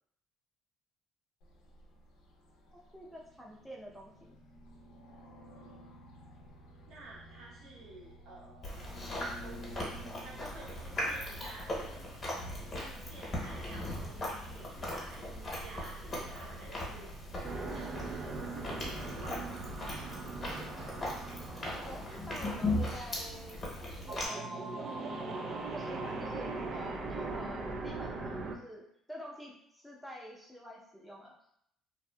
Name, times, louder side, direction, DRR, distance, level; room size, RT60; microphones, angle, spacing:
sound 1, 1.4-15.2, equal, 80° left, 0.5 m, -55 dB
voice 1, 2.7-4.4 21.8-23.6 23.9-25.0 25.7-28.8 29.1-31.3, equal, ahead, -3 dB, 0.6 m, -48 dB
voice 2, 6.9-12.0 12.7-17.1 17.4-19.4, right 2 dB, 60° right, -4 dB, 0.9 m, -52 dB
Chewing mastication, 8.6-24.3, left 1 dB, 35° left, 1.0 m, -38 dB
sound 2, 17.4-28.6, right 3 dB, 45° right, 0.3 m, -40 dB
2.6 x 2.3 x 2.2 m, 0.71 s
cardioid pair, 100°, 0 cm